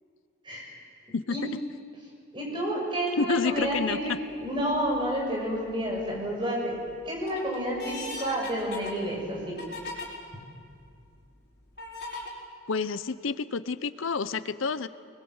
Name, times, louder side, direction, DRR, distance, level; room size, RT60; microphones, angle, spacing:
voice 1, 2.3-4.1 4.4-6.8 7.0-9.5, equal, 25° right, -2 dB, 6.6 m, -30 dB
voice 2, 3.2-4.2 12.7-14.9, left 4 dB, 80° left, 14 dB, 0.7 m, -29 dB
sound 1, 3.6-4.0 4.6-5.2 5.7-6.3 6.8-10.1 10.7-10.8 11.8-12.3, left 2 dB, 50° left, 4.8 m, -39 dB
24.5 x 21.0 x 7.9 m, 2.3 s
head